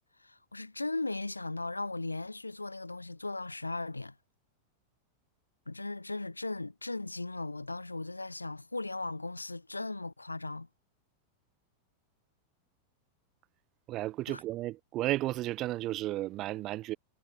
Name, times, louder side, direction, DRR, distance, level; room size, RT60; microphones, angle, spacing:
voice 1, 0.2-4.1 5.7-10.7 14.3-14.4, left 2 dB, 85° left, 3.0 m, -37 dB
voice 2, 13.9-17.0, right 16 dB, 35° right, 1.1 m, -33 dB
figure-of-eight pair, 90°, 0 cm